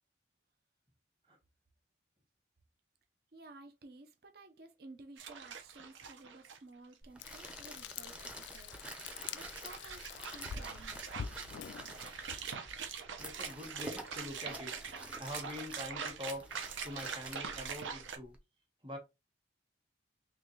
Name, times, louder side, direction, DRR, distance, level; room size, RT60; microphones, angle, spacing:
voice 1, 3.3-8.7 9.3-11.4, right 2 dB, 55° right, 0.6 m, -55 dB
sound 1, 5.2-6.6 6.9-7.0 8.1-18.2, right 6 dB, 90° right, 0.8 m, -44 dB
sound 2, 7.0-18.4, right 1 dB, 5° right, 0.6 m, -50 dB
Frying (food), 7.2-12.6, left 7 dB, 75° left, 0.3 m, -46 dB
voice 2, 13.2-14.7 15.2-16.5 16.8-18.4 18.8-19.0, left 1 dB, 25° right, 1.3 m, -44 dB
3.7 x 3.1 x 3.1 m
head